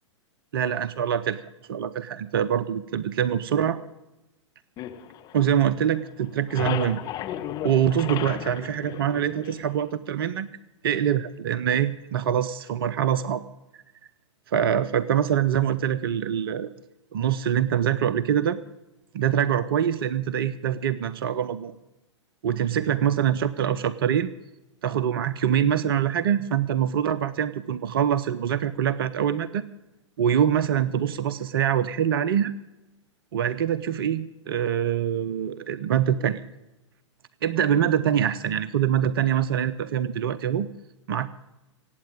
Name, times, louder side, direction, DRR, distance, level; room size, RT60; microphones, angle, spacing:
voice 1, 0.5-1.4 1.7-3.8 5.3-7.0 7.6-10.5 10.8-13.4 14.5-16.7 17.1-18.6 19.1-21.7 22.4-24.3 24.8-29.7 30.2-32.5 33.3-36.4 37.4-40.7 41.1-41.3, right 9 dB, 50° right, 15 dB, 0.7 m, -24 dB
sound 1, 4.8-5.9 6.2-9.9, left 11 dB, 25° left, 1.4 m, -34 dB
16.0 x 9.1 x 8.8 m, 0.96 s
figure-of-eight pair, 105°, 16 cm